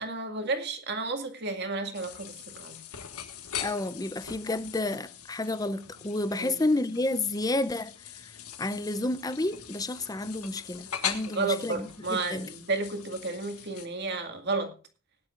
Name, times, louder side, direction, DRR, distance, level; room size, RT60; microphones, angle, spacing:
voice 1, 0.0-2.8 6.4-6.5 11.3-14.7, right 3 dB, 50° right, 2.2 m, -32 dB
sound 1, 1.9-13.9, left 9 dB, 90° left, 1.8 m, -41 dB
voice 2, 3.6-7.9 8.2-8.3 8.6-12.5, left 2 dB, 15° left, 0.6 m, -30 dB
19.5 x 10.5 x 2.5 m
head